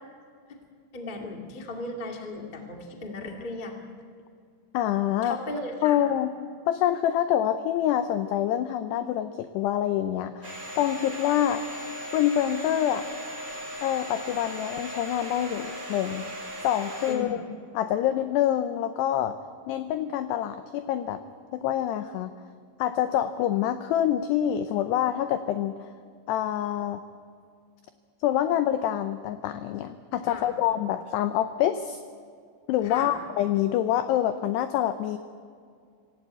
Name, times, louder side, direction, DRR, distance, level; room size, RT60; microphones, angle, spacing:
voice 1, 0.9-3.7 5.2-6.0 17.1-17.3 30.3-30.5 32.8-33.1, left 2 dB, 45° left, 2 dB, 0.6 m, -36 dB
voice 2, 4.7-5.4 5.8-6.3 6.7-11.6 12.1-13.1 13.8-16.3 16.6-17.4 17.7-19.4 19.7-21.2 21.5-22.3 22.8-25.9 26.3-27.0 28.2-32.0 32.7-35.2, left 11 dB, 90° left, 10 dB, 2.4 m, -26 dB
Domestic sounds home sounds, 10.4-17.1, equal, 15° right, 3.3 m, -38 dB
26.0 x 15.5 x 8.3 m, 2.2 s
omnidirectional pair, 5.7 m